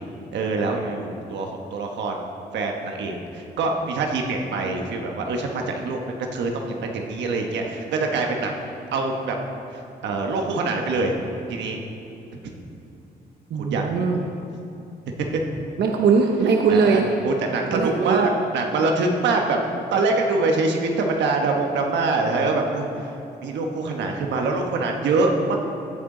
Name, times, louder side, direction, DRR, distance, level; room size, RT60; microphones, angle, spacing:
voice 1, 0.3-2.2 2.5-6.0 6.3-9.4 9.7-11.2 11.5-11.8 12.4-12.5 13.5-13.8 16.7-19.6 19.9-23.1 23.4-25.6, right 3 dB, 90° right, 2 dB, 1.3 m, -24 dB
voice 2, 13.5-14.2 15.8-17.1 17.7-18.2, right 5 dB, 65° right, 2 dB, 0.9 m, -20 dB
16.0 x 8.9 x 3.9 m, 2.8 s
cardioid pair, 100°, 18 cm